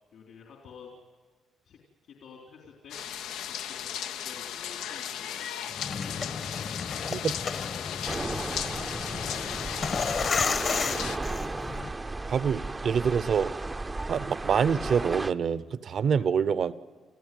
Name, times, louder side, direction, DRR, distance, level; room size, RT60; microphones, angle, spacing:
voice 1, 0.1-1.0 1.7-1.8 2.0-3.0 3.5-6.2 7.2-10.0 10.5-11.5, left 6 dB, 70° left, 0 dB, 3.8 m, -50 dB
sound 1, 2.9-11.2, left 10 dB, 90° left, 0.6 m, -36 dB
sound 2, 5.7-11.9, left 5 dB, 45° left, 1.2 m, -33 dB
sound 3, 8.1-15.3, right 2 dB, 20° right, 0.6 m, -35 dB
voice 2, 12.3-13.5 14.1-16.7, right 7 dB, 55° right, 15 dB, 0.9 m, -26 dB
29.5 x 15.0 x 9.3 m, 1.4 s
cardioid pair, 90°, 0 cm